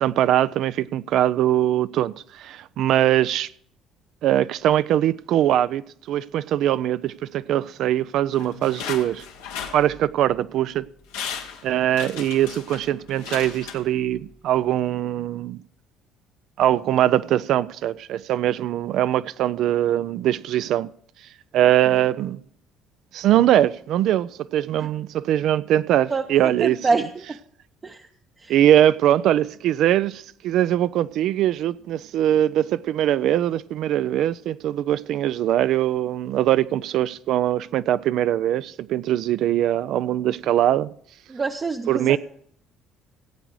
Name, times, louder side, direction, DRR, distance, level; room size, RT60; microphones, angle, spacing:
voice 1, 0.0-3.5 4.2-9.3 9.7-10.9 11.2-11.3 11.6-15.6 16.6-20.9 21.5-22.4 23.1-26.8 28.5-40.9 41.9-42.2, right 12 dB, 65° right, 0.4 m, -22 dB
sound 1, 8.3-10.4 10.8-10.9 11.1-14.3 14.6-14.7, left 7 dB, 90° left, 1.3 m, -36 dB
voice 2, 26.6-27.4 27.8-28.0 28.4-28.5 41.3-42.2, right 4 dB, 30° right, 0.7 m, -25 dB
16.0 x 8.0 x 4.7 m
hypercardioid pair, 65°, 0 cm